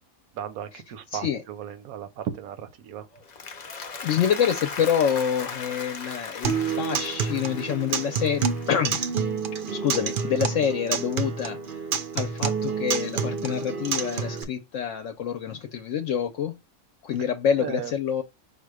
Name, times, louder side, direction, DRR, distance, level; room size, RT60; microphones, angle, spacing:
voice 1, 0.3-3.1 17.6-17.9, right 9 dB, 85° right, 1.1 m, -35 dB
voice 2, 1.1-1.4 4.0-9.0 9.7-11.8 12.1-16.5 17.0-18.2, left 8 dB, 70° left, 0.9 m, -27 dB
Applause, 3.1-9.5, left 5 dB, 45° left, 0.5 m, -38 dB
Acoustic guitar, 6.4-14.4, right 6 dB, 60° right, 0.6 m, -28 dB
5.0 x 2.2 x 4.7 m
omnidirectional pair, 1.5 m